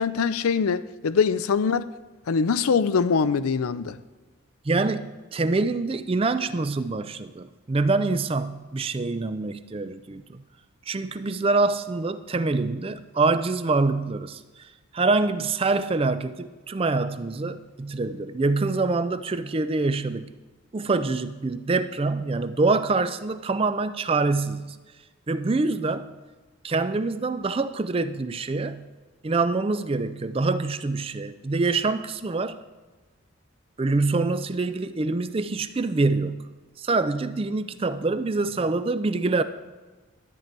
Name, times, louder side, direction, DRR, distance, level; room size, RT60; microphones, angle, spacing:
voice 1, 0.0-1.9 2.3-4.0, left 5 dB, 85° left, 0.5 m, -23 dB
voice 2, 4.7-10.4 10.9-20.3 20.7-24.8 25.3-26.1 26.6-28.9 29.2-32.6 33.8-36.5 36.8-39.4, right 3 dB, 25° right, 0.4 m, -25 dB
12.0 x 9.0 x 4.5 m
head